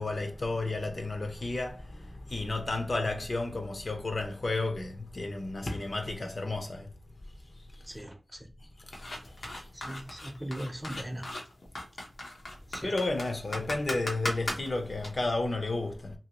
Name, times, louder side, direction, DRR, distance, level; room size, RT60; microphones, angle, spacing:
voice 1, 0.0-2.0 2.3-6.9 9.0-9.1 12.8-16.1, left 2 dB, 55° left, 0.7 m, -32 dB
sound 1, 8.9-15.1, left 1 dB, 85° left, 0.9 m, -37 dB
voice 2, 9.8-11.2 12.7-12.9, right 1 dB, 15° right, 0.7 m, -39 dB
2.8 x 2.7 x 2.9 m
wide cardioid pair, 65°, 0 cm